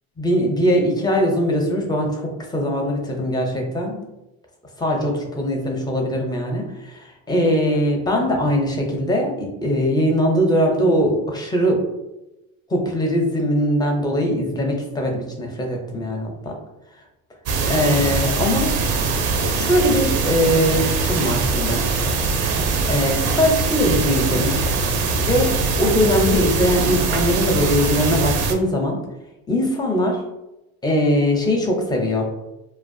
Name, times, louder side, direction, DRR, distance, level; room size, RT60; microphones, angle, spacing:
voice 1, 0.2-4.1 4.8-11.8 12.7-16.5 17.6-18.7 19.5-21.8 22.8-24.7 25.2-25.5 25.8-29.0 29.5-30.2 30.8-32.3, equal, 15° left, 1 dB, 0.5 m, -21 dB
sound 1, 17.5-28.5, right 4 dB, 50° right, 0.4 m, -22 dB
2.4 x 2.1 x 2.5 m, 0.95 s
cardioid pair, 115°, 32 cm